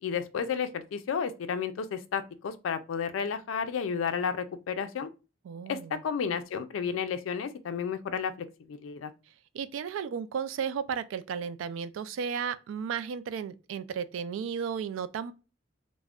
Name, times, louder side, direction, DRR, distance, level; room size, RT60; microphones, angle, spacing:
voice 1, 0.0-5.1 5.7-8.3 8.7-9.1, left 6 dB, 90° left, 0.4 m, -32 dB
voice 2, 5.5-6.0 9.5-15.3, right 7 dB, 90° right, 0.3 m, -34 dB
2.3 x 2.1 x 3.5 m
head